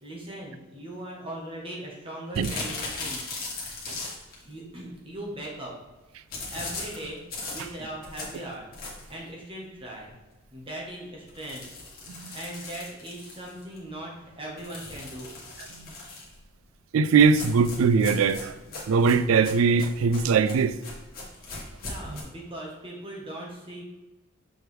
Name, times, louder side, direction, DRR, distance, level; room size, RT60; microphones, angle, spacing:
voice 1, 0.0-3.2 4.3-5.8 6.5-8.7 9.1-10.1 10.5-11.6 12.3-15.3 21.8-23.8, right 1 dB, 25° right, 1.3 m, -39 dB
sound 1, 2.3-4.4 6.3-9.2 9.7-9.8 10.1-10.2 10.5-10.6 11.3-13.8 14.6-16.4 17.2-22.2, left 3 dB, 50° left, 1.6 m, -38 dB
voice 2, 16.9-18.6 18.9-20.8 22.1-22.2, right 5 dB, 85° right, 0.3 m, -21 dB
6.3 x 4.5 x 3.4 m
head